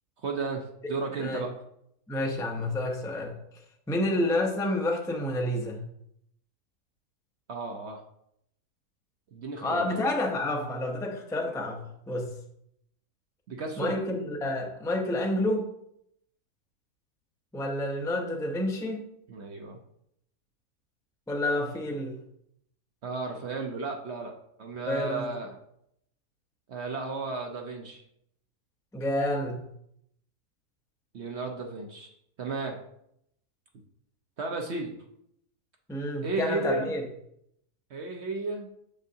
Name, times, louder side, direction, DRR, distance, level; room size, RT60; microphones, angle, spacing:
voice 1, 0.2-1.5 7.5-8.0 9.3-10.0 13.5-13.9 19.3-19.8 23.0-25.6 26.7-28.0 31.1-32.1 32.4-32.8 34.4-34.9 36.2-36.9 37.9-38.7, right 3 dB, 55° right, 2 dB, 0.8 m, -34 dB
voice 2, 2.1-3.3 3.9-5.8 9.6-12.3 13.8-15.7 17.5-19.1 21.3-22.2 24.9-25.3 28.9-29.6 35.9-37.0, left 1 dB, 5° left, 1 dB, 0.5 m, -29 dB
7.0 x 6.5 x 2.8 m, 0.75 s
omnidirectional pair, 1.7 m